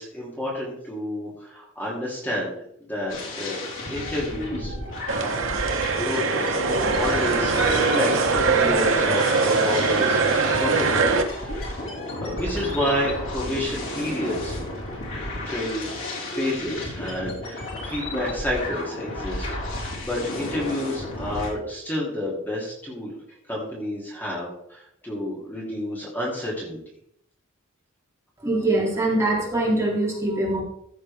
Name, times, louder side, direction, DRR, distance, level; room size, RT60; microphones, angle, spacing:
voice 1, 0.0-2.5 2.8-3.6 3.9-4.7 5.9-11.8 12.2-14.6 15.4-15.9 16.3-23.2 23.5-26.8, left 1 dB, 10° left, -5 dB, 3.0 m, -30 dB
sound 1, 3.1-21.5, left 1 dB, 70° left, 3.9 m, -32 dB
sound 2, 5.1-11.2, right 4 dB, 70° right, 1.3 m, -22 dB
voice 2, 28.4-30.6, right 1 dB, 15° right, -4 dB, 3.4 m, -23 dB
15.0 x 7.2 x 3.6 m, 0.71 s
head